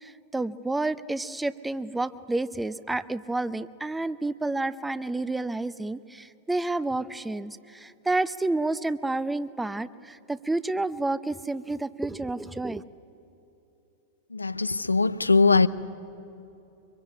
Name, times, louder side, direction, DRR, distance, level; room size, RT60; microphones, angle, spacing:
voice 1, 0.0-12.8, right 2 dB, 5° right, 0.8 m, -30 dB
voice 2, 14.3-15.7, left 4 dB, 80° left, 0.7 m, -21 dB
24.5 x 23.0 x 9.6 m
figure-of-eight pair, 90°, 0 cm